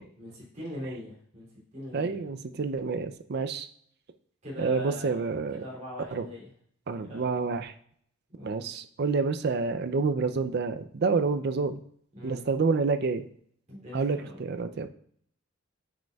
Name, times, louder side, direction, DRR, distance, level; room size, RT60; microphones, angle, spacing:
voice 1, 0.2-2.2 4.4-5.2 5.6-6.5 7.0-7.2 8.3-8.6 12.1-12.4 13.7-14.4, equal, 35° right, -6 dB, 2.8 m, -41 dB
voice 2, 1.9-3.7 4.6-5.6 6.1-6.2 6.9-7.7 8.4-11.8 12.2-13.3 13.9-14.9, right 4 dB, 50° right, 9 dB, 0.4 m, -28 dB
9.2 x 5.1 x 2.3 m, 0.63 s
head